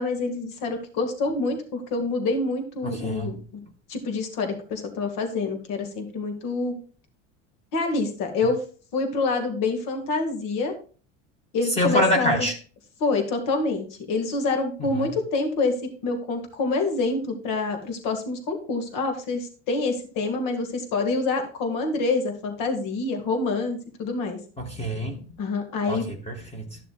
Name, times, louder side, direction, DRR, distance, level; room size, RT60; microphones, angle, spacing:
voice 1, 0.0-3.6 3.9-6.8 7.7-8.6 8.9-10.7 11.5-12.5 13.0-15.8 16.0-24.4 25.4-26.1, left 3 dB, 65° left, 5 dB, 2.0 m, -27 dB
voice 2, 2.8-3.4 11.8-12.5 14.8-15.1 24.6-25.2 25.9-26.8, equal, 15° left, 2 dB, 1.7 m, -26 dB
13.0 x 6.8 x 2.4 m, 0.39 s
supercardioid pair, 100°, 35 cm